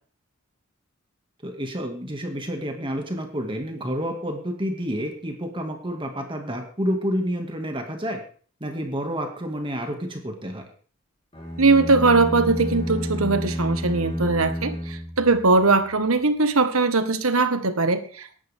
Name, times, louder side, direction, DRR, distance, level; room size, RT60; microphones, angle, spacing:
voice 1, 1.4-8.2 8.6-10.6, equal, 25° right, 3 dB, 2.2 m, -29 dB
sound 1, 11.3-15.7, equal, 25° left, 4.5 m, -30 dB
voice 2, 11.6-18.5, right 3 dB, 80° right, 9 dB, 1.7 m, -20 dB
19.0 x 11.0 x 3.7 m, 0.43 s
head